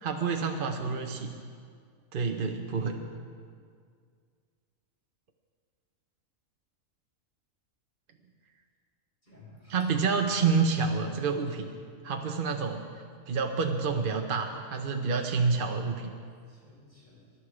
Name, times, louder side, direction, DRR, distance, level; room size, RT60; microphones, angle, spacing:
voice 1, 0.0-1.3 2.1-2.9 9.7-11.7 12.0-12.9 13.3-16.1, right 5 dB, 45° right, 3 dB, 0.9 m, -28 dB
voice 2, 0.8-1.2 2.7-3.1 9.3-9.7 16.5-17.2, left 2 dB, 35° left, -6 dB, 5.0 m, -50 dB
20.0 x 11.5 x 4.9 m, 2.1 s
omnidirectional pair, 1.4 m